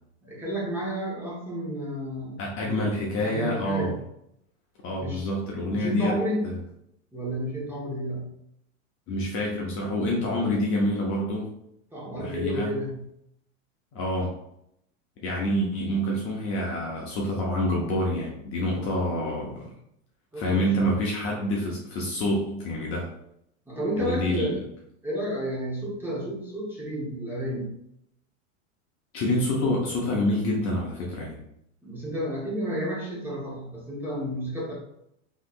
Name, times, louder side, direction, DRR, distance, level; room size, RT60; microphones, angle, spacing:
voice 1, 0.2-2.9 3.2-3.9 5.0-5.3 5.7-6.5 7.1-8.3 11.9-13.0 18.8-18.9 20.3-20.9 23.7-24.6 25.0-27.8 31.8-34.7, equal, 5° right, -5 dB, 1.0 m, -31 dB
voice 2, 2.4-3.9 4.8-6.2 6.4-6.5 9.1-11.6 12.2-12.8 13.9-14.3 15.2-19.6 20.4-23.1 24.0-24.5 29.1-31.4, left 1 dB, 35° left, -2 dB, 0.6 m, -27 dB
3.1 x 2.8 x 2.4 m, 0.76 s
supercardioid pair, 125°, 40 cm